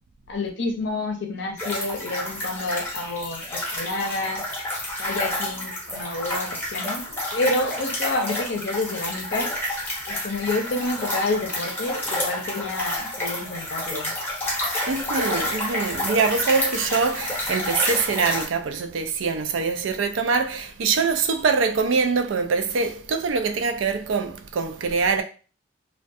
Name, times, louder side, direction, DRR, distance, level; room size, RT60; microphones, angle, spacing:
voice 1, 0.3-4.4 5.0-9.5 10.1-14.1, left 2 dB, 60° left, 0.6 m, -29 dB
sound 1, 1.6-18.4, left 1 dB, 10° left, 0.6 m, -29 dB
voice 2, 14.9-25.2, right 5 dB, 80° right, 0.4 m, -24 dB
2.3 x 2.2 x 2.6 m
head